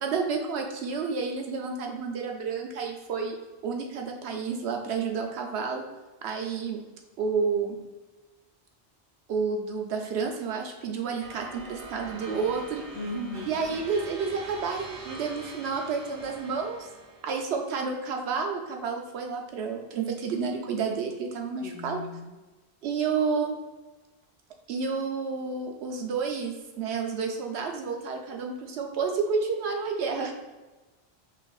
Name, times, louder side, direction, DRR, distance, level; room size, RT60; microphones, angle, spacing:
voice 1, 0.0-3.4 3.6-5.8 6.2-6.8 7.2-7.8 9.3-12.8 13.5-16.8 17.2-22.0 22.8-23.6 24.7-30.3, right 5 dB, 85° right, 2 dB, 0.9 m, -30 dB
sound 1, 11.2-17.4, right 3 dB, 45° right, 0.5 m, -44 dB
voice 2, 12.9-13.8 21.6-22.3, left 1 dB, 35° left, -3 dB, 0.6 m, -37 dB
5.8 x 2.4 x 2.3 m, 1.2 s
omnidirectional pair, 1.1 m